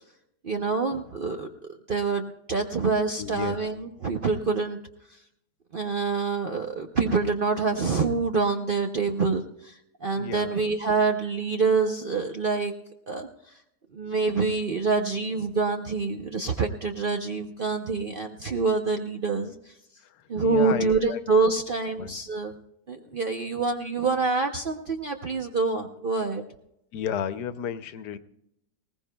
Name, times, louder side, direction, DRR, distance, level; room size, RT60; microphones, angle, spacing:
voice 1, 0.4-1.5 1.9-4.8 5.1-5.2 5.7-12.7 13.1-13.5 13.9-19.7 20.3-22.5 22.9-26.4, right 4 dB, 45° right, 4 dB, 0.7 m, -26 dB
voice 2, 3.2-3.7 10.2-10.5 20.4-21.2 22.0-22.2 26.9-28.2, left 8 dB, 90° left, 12 dB, 1.3 m, -32 dB
20.5 x 18.5 x 2.2 m, 0.80 s
omnidirectional pair, 1.7 m